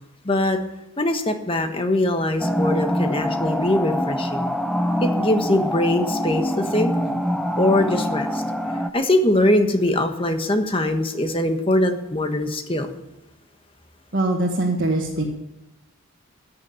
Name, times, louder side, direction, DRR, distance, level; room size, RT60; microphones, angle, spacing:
voice 1, 0.2-0.6 1.0-4.5 5.0-6.9 7.6-8.4 8.9-12.9, left 1 dB, 25° left, 6 dB, 1.4 m, -22 dB
sound 1, 2.4-8.9, equal, ahead, 0.5 m, -24 dB
voice 2, 14.1-15.2, right 2 dB, 50° right, -4 dB, 1.8 m, -22 dB
15.0 x 6.9 x 8.9 m, 0.92 s
head